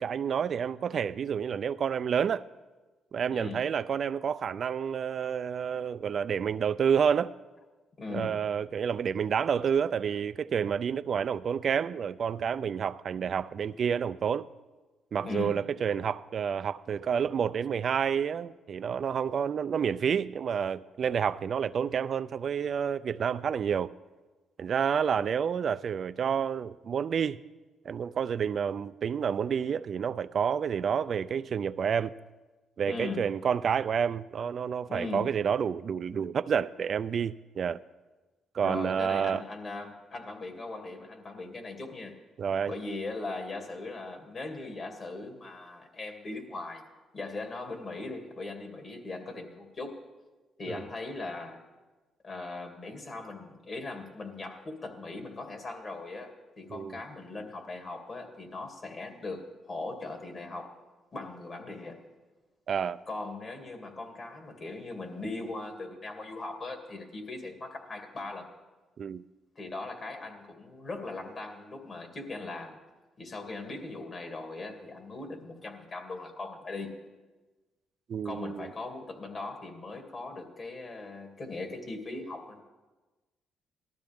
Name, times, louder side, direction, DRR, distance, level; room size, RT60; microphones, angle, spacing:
voice 1, 0.0-2.4 3.1-7.3 8.1-14.5 15.1-23.9 24.6-27.4 27.9-32.1 32.8-37.8 38.5-39.4 42.4-42.7 50.7-50.8 56.7-57.0 62.7-63.0 69.0-69.2 78.1-78.7, right 7 dB, 55° right, 0.3 m, -29 dB
voice 2, 3.3-3.7 8.0-8.4 15.2-15.6 32.9-33.3 34.9-35.3 38.6-42.2 42.6-46.8 47.1-50.0 50.6-51.6 52.2-60.7 61.1-62.0 63.1-68.5 69.6-72.8 73.2-77.0 78.2-82.6, left 3 dB, 40° left, 2.4 m, -39 dB
18.5 x 13.0 x 3.5 m
cardioid pair, 90°, 0 cm